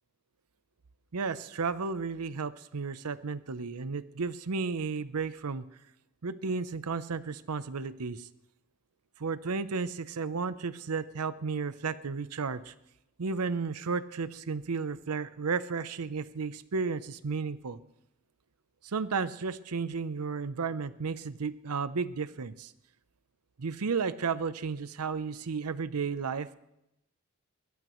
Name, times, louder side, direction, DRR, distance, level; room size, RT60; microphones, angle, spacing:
voice 1, 1.1-5.6 6.2-8.3 9.2-12.7 13.2-17.8 18.8-22.7 23.6-26.6, right 5 dB, 85° right, 14 dB, 0.7 m, -33 dB
21.5 x 20.5 x 3.1 m, 0.85 s
head